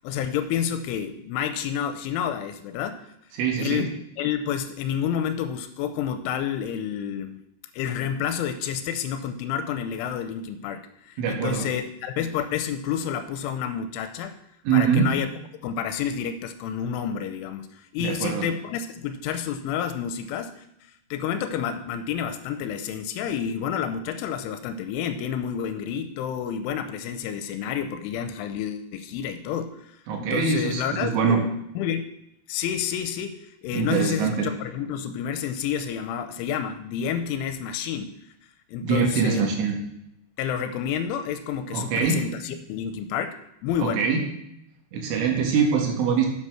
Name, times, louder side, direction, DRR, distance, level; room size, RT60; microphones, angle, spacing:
voice 1, 0.0-3.0 3.6-3.9 4.2-7.4 7.7-14.4 14.7-15.3 15.6-20.6 21.1-29.7 30.2-31.5 31.8-32.0 32.5-33.4 33.6-38.1 38.7-39.4 40.4-43.4 43.6-44.1, left 8 dB, 80° left, 9 dB, 3.0 m, -29 dB
voice 2, 3.3-3.9 11.2-11.7 14.7-15.1 18.0-18.5 30.1-31.4 33.7-34.5 38.8-39.8 41.7-42.2 43.8-44.2 44.9-46.3, right 6 dB, 75° right, 1 dB, 4.3 m, -23 dB
10.0 x 8.3 x 6.3 m, 0.77 s
omnidirectional pair, 5.8 m